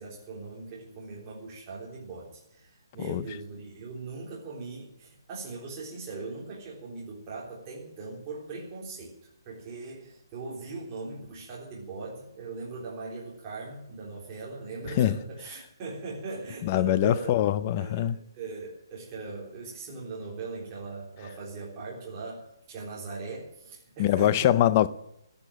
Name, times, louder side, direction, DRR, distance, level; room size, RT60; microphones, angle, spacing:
voice 1, 0.0-9.1 9.5-17.3 17.8-24.7, right 3 dB, 20° right, 3.8 m, -40 dB
voice 2, 16.6-18.2 24.0-24.9, left 12 dB, 25° left, 0.6 m, -23 dB
13.5 x 10.5 x 8.6 m
hypercardioid pair, 165°, 2 cm